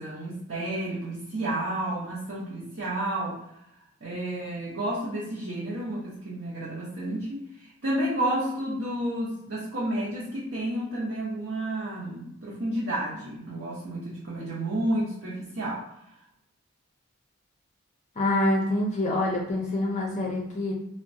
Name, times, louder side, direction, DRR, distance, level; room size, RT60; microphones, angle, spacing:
voice 1, 0.0-3.4 4.0-15.8, right 1 dB, 55° right, -7 dB, 0.7 m, -31 dB
voice 2, 18.2-20.7, left 1 dB, 35° left, -2 dB, 0.5 m, -26 dB
3.7 x 2.1 x 2.5 m, 0.80 s
head